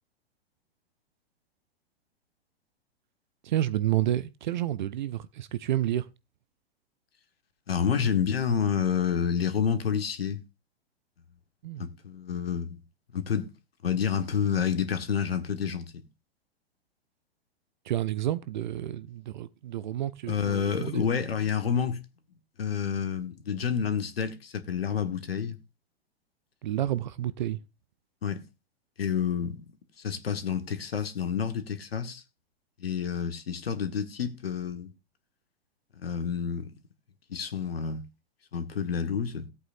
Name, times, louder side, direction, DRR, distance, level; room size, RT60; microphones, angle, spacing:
voice 1, 3.4-6.1 11.6-11.8 17.9-21.0 26.6-27.6, right 12 dB, 45° right, 0.7 m, -30 dB
voice 2, 7.7-10.4 11.8-12.8 13.1-13.5 13.8-16.0 20.3-22.0 22.6-25.6 28.2-28.4 29.0-29.6 30.0-32.2 32.8-34.9 35.9-36.7 37.3-38.1 38.5-39.5, left 7 dB, 65° left, 1.7 m, -29 dB
17.5 x 8.2 x 2.6 m
figure-of-eight pair, 105°, 32 cm